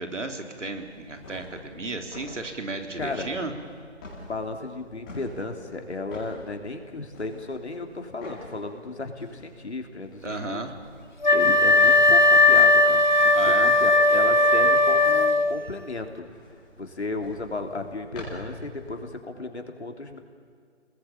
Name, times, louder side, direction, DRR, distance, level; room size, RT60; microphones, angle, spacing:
voice 1, 0.0-3.5 10.2-10.7 13.3-13.8, right 2 dB, 75° right, 5 dB, 3.7 m, -34 dB
sound 1, 0.6-19.1, left 1 dB, 5° left, 3.2 m, -47 dB
voice 2, 3.0-3.3 4.3-10.7 11.3-16.3 16.8-20.2, left 3 dB, 60° left, 4 dB, 3.3 m, -34 dB
Wind instrument woodwind instrument, 11.2-15.7, left 2 dB, 40° left, 0.8 m, -18 dB
30.0 x 21.0 x 8.7 m, 2.1 s
figure-of-eight pair, 180°, 37 cm